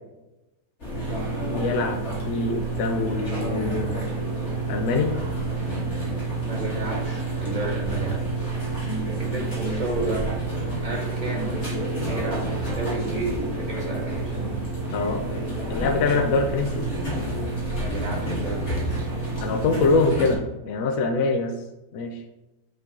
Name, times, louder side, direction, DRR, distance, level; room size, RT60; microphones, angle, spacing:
sound 1, 0.8-20.3, right 2 dB, 50° left, 2.0 m, -29 dB
voice 1, 1.5-2.0 2.3-4.1 4.7-5.1 14.9-15.2 15.7-16.8 19.4-21.5 21.9-22.2, left 3 dB, 70° left, 3 dB, 1.1 m, -24 dB
voice 2, 6.3-8.2 9.2-10.3 10.8-11.6 12.0-14.4 17.7-19.0, right 2 dB, 25° right, -2 dB, 1.8 m, -31 dB
8.4 x 4.0 x 3.7 m, 1.0 s
omnidirectional pair, 1.6 m